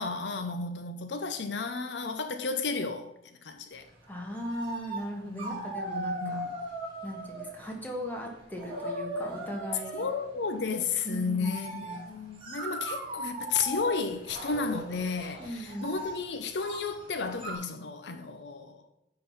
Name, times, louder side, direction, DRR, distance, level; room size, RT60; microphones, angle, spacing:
voice 1, 0.0-3.1 3.4-3.9 5.3-5.6 5.9-6.5 9.9-18.8, left 4 dB, 70° left, 0.7 m, -33 dB
sound 1, 4.0-4.1 4.4-5.1 5.4-7.8 8.4-10.2 11.3-17.6, right 1 dB, 30° right, 2.4 m, -38 dB
voice 2, 4.1-6.5 7.0-10.0 11.0-12.1 15.4-15.9, equal, 10° left, 1.6 m, -38 dB
9.7 x 3.9 x 5.5 m
head